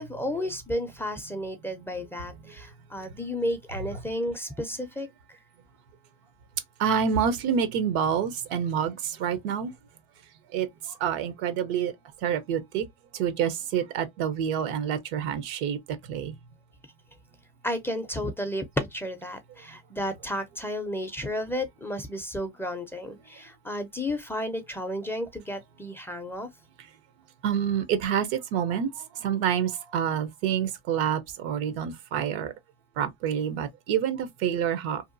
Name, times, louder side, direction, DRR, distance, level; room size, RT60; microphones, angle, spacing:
voice 1, 0.0-5.1 17.6-26.5, left 1 dB, 5° left, 0.4 m, -32 dB
voice 2, 6.8-9.7 10.5-10.7 11.0-11.9 12.2-12.8 13.2-15.8 16.1-16.3 27.4-28.9 29.2-32.5 33.0-35.0, right 8 dB, 75° right, 0.7 m, -27 dB
2.8 x 2.2 x 2.5 m
supercardioid pair, 110°, 31 cm